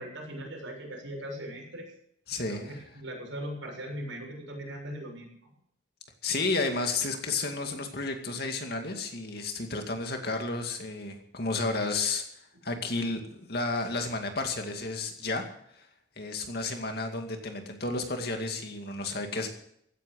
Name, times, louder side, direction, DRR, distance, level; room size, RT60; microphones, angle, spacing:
voice 1, 0.0-1.9 2.5-5.3, equal, 90° right, -1 dB, 7.2 m, -39 dB
voice 2, 2.3-2.8 6.2-12.2 12.6-15.5 15.8-15.9 16.2-19.5, left 3 dB, 55° left, 4 dB, 2.4 m, -32 dB
16.0 x 9.4 x 8.0 m, 0.71 s
head